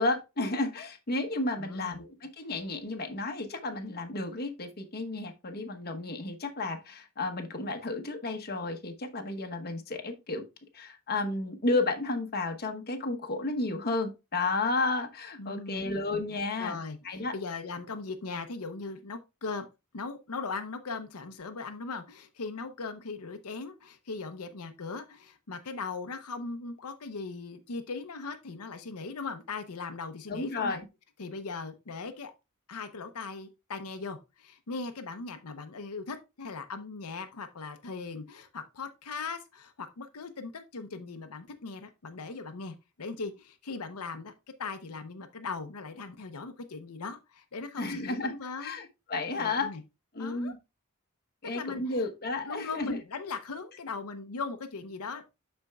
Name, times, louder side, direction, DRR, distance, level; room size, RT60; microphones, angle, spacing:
voice 1, 0.0-10.4 10.7-16.8 17.0-17.3 30.3-30.8 47.8-48.3 48.6-49.7 50.1-50.6 51.4-53.0, left 2 dB, 45° left, 1.1 m, -32 dB
voice 2, 1.5-2.0 15.4-16.0 16.6-19.7 19.9-30.8 31.2-32.3 32.7-44.3 44.6-48.7 49.4-49.8 50.2-50.5 51.5-52.1 52.4-55.2, left 4 dB, 80° left, 0.8 m, -39 dB
12.0 x 4.4 x 2.3 m
head